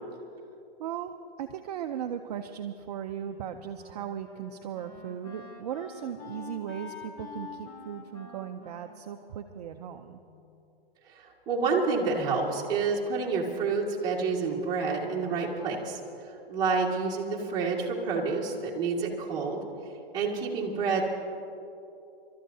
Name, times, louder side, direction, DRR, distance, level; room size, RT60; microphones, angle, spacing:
voice 1, 0.8-1.1 1.4-10.2, right 9 dB, 40° right, 5 dB, 0.5 m, -37 dB
Wind instrument woodwind instrument, 3.2-10.4, left 5 dB, 30° left, 1.6 m, -47 dB
voice 2, 11.2-16.0 16.5-19.6 20.1-21.0, right 4 dB, 15° right, -5 dB, 1.8 m, -28 dB
30.0 x 13.0 x 2.7 m, 2.8 s
hypercardioid pair, 150°, 31 cm